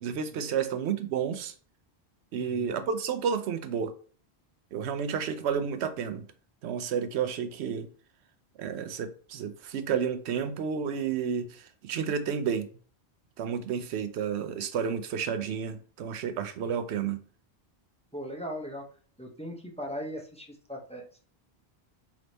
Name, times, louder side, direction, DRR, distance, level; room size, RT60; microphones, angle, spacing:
voice 1, 0.0-1.5 2.3-3.9 4.7-6.3 6.6-7.9 8.6-12.7 13.4-17.2, right 7 dB, 85° right, 0.8 m, -31 dB
voice 2, 2.4-2.7 18.1-18.8 19.2-21.3, equal, 10° left, 0.4 m, -39 dB
3.3 x 3.0 x 3.9 m
omnidirectional pair, 1.1 m